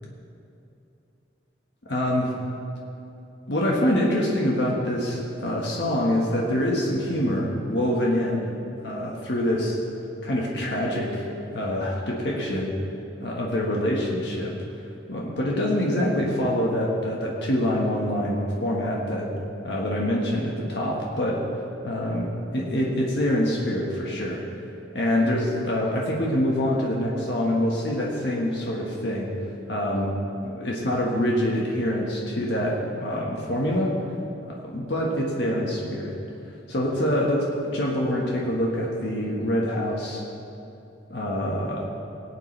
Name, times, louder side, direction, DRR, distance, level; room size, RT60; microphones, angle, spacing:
voice 1, 1.9-2.3 3.5-8.5 8.8-9.8 10.2-11.3 11.5-12.7 13.2-14.6 15.1-19.3 19.6-21.4 21.8-24.4 24.9-29.3 29.7-30.1 30.4-33.9 34.4-36.1 36.7-40.2 41.1-41.9, left 1 dB, 70° left, -3 dB, 1.5 m, -25 dB
20.0 x 8.4 x 3.3 m, 2.9 s
head